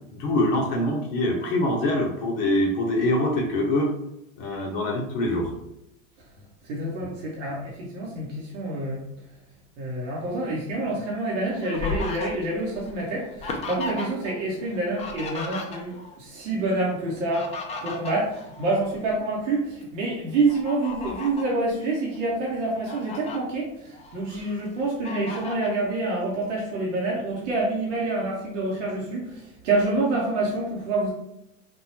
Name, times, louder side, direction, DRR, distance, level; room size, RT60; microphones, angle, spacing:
voice 1, 0.1-3.9 4.4-5.5, left 1 dB, 50° left, 0 dB, 0.7 m, -24 dB
voice 2, 6.7-9.0 9.8-17.5 17.8-31.1, right 2 dB, 65° right, -3 dB, 0.9 m, -27 dB
Fowl, 11.0-14.3 14.6-16.2 17.1-19.2 19.6-19.8 20.5-21.5 22.1-22.2 22.6-23.4 23.9-24.6 25.0-25.8, left 3 dB, 15° left, 0.4 m, -35 dB
3.4 x 2.2 x 2.8 m, 0.85 s
figure-of-eight pair, 80°, 40 cm